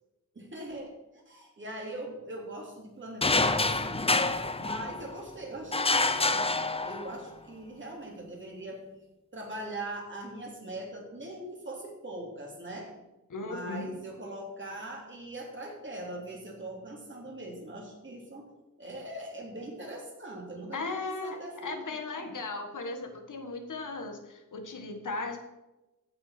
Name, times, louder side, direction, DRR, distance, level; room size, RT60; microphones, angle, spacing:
voice 1, 0.3-4.3 4.6-8.8 9.3-13.0 13.4-18.5 18.8-22.3, right 1 dB, 35° right, -1 dB, 3.4 m, -41 dB
sound 1, 3.2-5.2 5.7-7.3, left 3 dB, 20° left, 0.6 m, -27 dB
voice 2, 13.3-13.9 20.7-25.4, left 3 dB, 70° left, 6 dB, 1.6 m, -37 dB
15.5 x 5.9 x 6.0 m, 0.99 s
wide cardioid pair, 125°, 32 cm